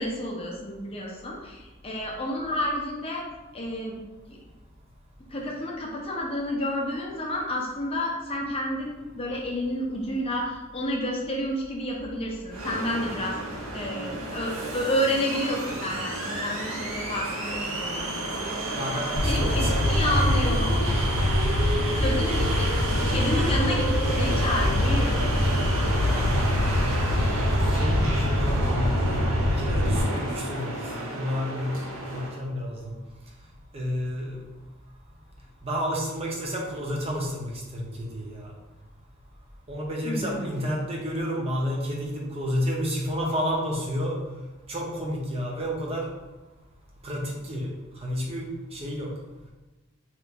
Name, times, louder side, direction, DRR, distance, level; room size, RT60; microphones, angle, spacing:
voice 1, 0.0-3.2 3.5-4.0 4.3-4.4 5.3-13.4 13.7-18.0 19.2-20.8 21.9-22.7 23.1-25.3 40.0-40.5, left 1 dB, 25° left, -2 dB, 0.5 m, -30 dB
sound 1, 12.5-32.4, right 1 dB, 70° right, 0.7 m, -31 dB
voice 2, 18.7-19.9 27.6-31.7 32.1-32.9 33.7-34.4 35.6-38.5 39.7-44.2 44.7-46.1 47.0-49.1, equal, 30° right, -2 dB, 0.6 m, -31 dB
Fire, 19.2-30.0, left 1 dB, 70° left, 0.5 m, -24 dB
2.9 x 2.5 x 3.4 m, 1.1 s
head